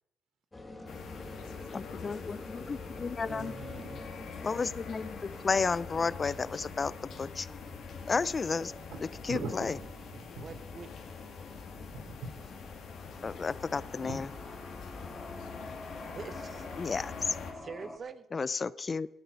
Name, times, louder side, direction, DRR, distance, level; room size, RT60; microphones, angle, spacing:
sound 1, 0.5-18.0, left 2 dB, 20° left, 1.6 m, -48 dB
sound 2, 0.9-17.5, left 5 dB, 65° left, 2.5 m, -45 dB
voice 1, 1.2-3.1 11.4-11.9 15.4-16.2, left 6 dB, 90° left, 6 dB, 1.9 m, -56 dB
voice 2, 1.7-3.5 4.4-7.5 8.1-8.7 9.3-9.7 13.2-14.3 16.8-17.4 18.3-19.1, left 4 dB, 35° left, 20 dB, 0.4 m, -32 dB
voice 3, 3.3-4.1 10.4-10.9 16.1-16.7 17.5-18.3, right 5 dB, 45° right, 13 dB, 1.1 m, -44 dB
voice 4, 9.3-10.6 11.8-12.7 14.0-14.6, right 3 dB, 80° right, 5 dB, 3.2 m, -42 dB
18.5 x 8.1 x 5.6 m, 0.87 s
cardioid pair, 90°, 0 cm